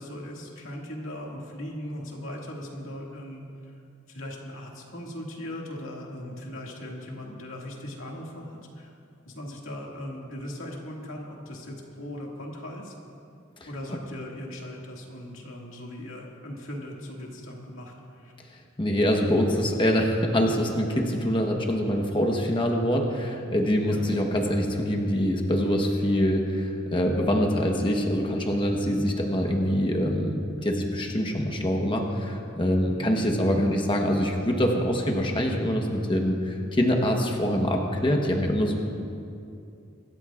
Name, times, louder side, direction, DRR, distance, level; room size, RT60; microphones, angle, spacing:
voice 1, 0.0-3.7 4.1-8.9 9.3-12.9 13.7-18.3 23.9-24.1 28.9-29.1 32.9-33.1, left 1 dB, 80° left, -1 dB, 2.1 m, -39 dB
voice 2, 18.8-38.8, equal, 25° left, 1 dB, 1.1 m, -24 dB
24.5 x 13.0 x 2.5 m, 2.6 s
head